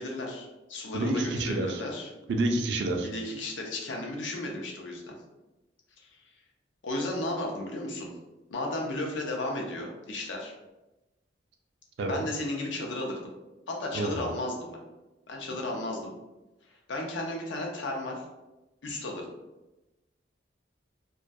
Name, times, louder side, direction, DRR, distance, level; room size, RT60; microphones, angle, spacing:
voice 1, 0.0-2.1 3.0-5.1 6.8-8.1 8.5-10.5 12.0-13.3 13.7-14.8 15.3-16.1 16.7-18.2 18.8-19.3, left 1 dB, 85° left, 0 dB, 0.5 m, -34 dB
voice 2, 0.9-1.8 2.3-3.1 12.0-12.2 13.9-14.3, right 2 dB, 65° right, 3 dB, 0.3 m, -28 dB
2.2 x 2.2 x 2.6 m, 1.0 s
head